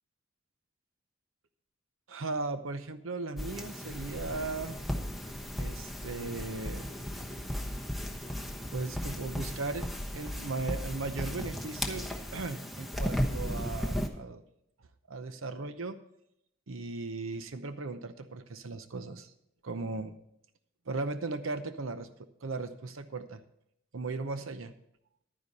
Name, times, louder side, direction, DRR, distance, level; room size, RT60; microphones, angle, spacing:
voice 1, 2.1-4.8 5.6-6.9 8.7-14.4 15.1-16.0 16.7-19.3 19.6-20.2 20.9-22.1 22.4-23.4 23.9-24.7, right 3 dB, 80° right, 10 dB, 0.8 m, -37 dB
sound 1, 3.4-14.1, equal, ahead, 1.0 m, -36 dB
sound 2, 4.2-11.2, equal, 30° right, 2.4 m, -54 dB
11.0 x 9.9 x 4.1 m, 0.77 s
head